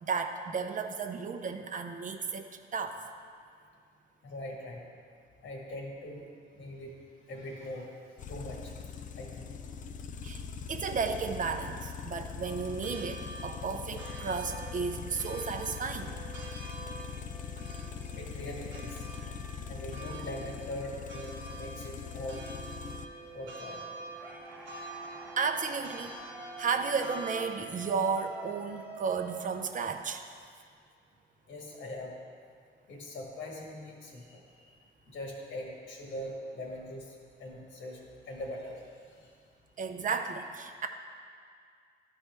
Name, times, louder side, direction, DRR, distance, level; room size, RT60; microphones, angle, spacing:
voice 1, 0.0-3.0 10.2-10.4 10.7-16.2 25.4-26.2 26.6-30.2 39.8-40.9, right 5 dB, 40° right, 6 dB, 0.5 m, -33 dB
voice 2, 4.2-4.8 5.4-6.2 6.5-6.9 7.3-7.9 8.3-8.8 9.1-9.5 18.1-19.0 19.7-22.4 23.3-23.9 31.5-32.1 32.9-34.8 35.1-39.3, left 1 dB, 75° left, -1 dB, 1.5 m, -42 dB
sound 1, 8.2-23.1, left 6 dB, 40° left, 0.4 m, -42 dB
sound 2, 12.4-27.5, right 2 dB, 75° right, 0.8 m, -47 dB
sound 3, 24.2-30.3, right 2 dB, 5° right, 0.8 m, -47 dB
11.0 x 4.3 x 3.4 m, 2.2 s
cardioid pair, 90°, 20 cm